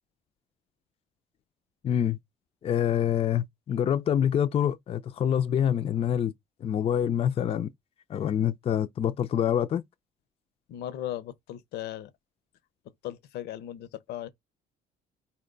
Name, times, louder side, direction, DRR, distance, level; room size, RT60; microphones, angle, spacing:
voice 1, 1.8-2.2 2.6-6.3 6.6-7.7 8.1-9.8, left 9 dB, 35° left, 0.4 m, -26 dB
voice 2, 10.7-12.1 13.0-14.3, left 12 dB, 75° left, 0.7 m, -37 dB
4.3 x 2.2 x 3.8 m
cardioid pair, 110°, 17 cm